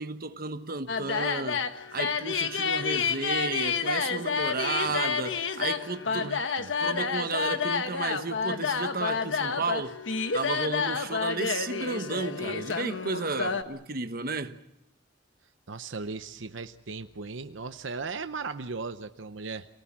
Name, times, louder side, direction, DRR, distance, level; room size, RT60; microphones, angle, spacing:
voice 1, 0.0-6.4 6.8-10.0 10.3-14.6, right 3 dB, 50° right, 1.2 m, -33 dB
sound 1, 0.9-13.6, left 5 dB, 80° left, 1.3 m, -29 dB
voice 2, 6.0-6.7 15.7-19.7, right 4 dB, 80° right, 0.8 m, -37 dB
27.5 x 19.0 x 7.4 m
head